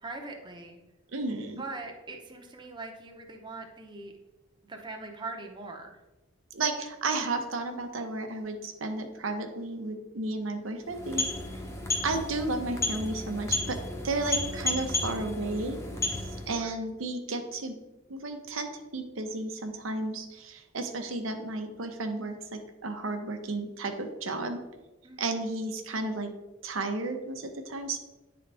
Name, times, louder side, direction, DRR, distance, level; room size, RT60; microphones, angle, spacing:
voice 1, 0.0-0.8 1.6-4.1 4.6-6.0 16.6-16.8 25.0-25.4, right 3 dB, 25° right, 2 dB, 0.7 m, -41 dB
voice 2, 1.1-1.6 6.5-11.2 12.0-13.8 14.0-15.8 16.1-17.8 18.1-24.6 25.2-26.3 26.6-28.0, right 2 dB, 90° right, 5 dB, 0.8 m, -33 dB
sound 1, 10.8-16.6, left 2 dB, 15° left, 0.7 m, -33 dB
9.7 x 3.9 x 3.4 m, 1.0 s
head